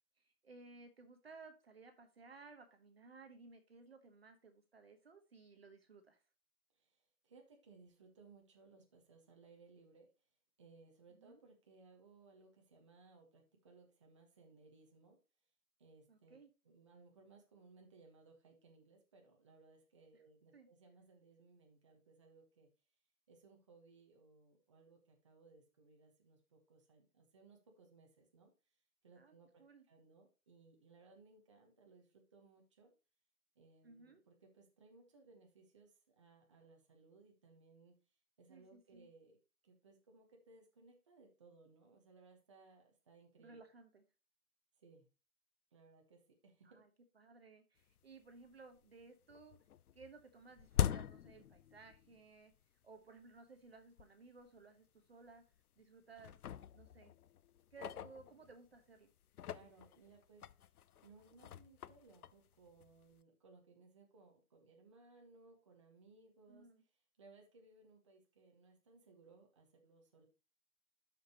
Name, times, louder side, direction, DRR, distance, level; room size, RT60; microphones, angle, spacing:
voice 1, 0.4-6.2 11.1-11.4 16.1-16.5 20.1-20.2 20.5-20.7 29.2-29.3 29.6-29.8 33.8-34.2 38.5-39.1 43.4-44.0 46.6-46.9 47.1-49.6 49.9-52.5 52.8-55.4 55.8-56.3 56.7-57.1 57.7-59.1 66.5-66.8, right 4 dB, 40° right, 6 dB, 1.1 m, -58 dB
voice 2, 7.2-10.1 10.6-15.2 15.8-16.4 16.6-22.7 23.3-28.5 29.0-29.5 29.9-32.9 33.6-37.9 38.4-39.4 39.6-43.6 44.8-45.1 45.7-46.8 59.5-60.5 61.0-66.7 67.2-70.2, right 3 dB, 20° right, 1 dB, 1.1 m, -64 dB
sound 1, 48.0-48.1 48.4-49.0 49.3-52.2 52.5-52.6 53.4-53.5 54.0-54.1 54.4-54.6 55.3-55.8 56.2-58.8 59.2-63.2, left 10 dB, 70° left, 0.6 m, -43 dB
12.0 x 5.1 x 2.9 m, 0.31 s
hypercardioid pair, 175°, 46 cm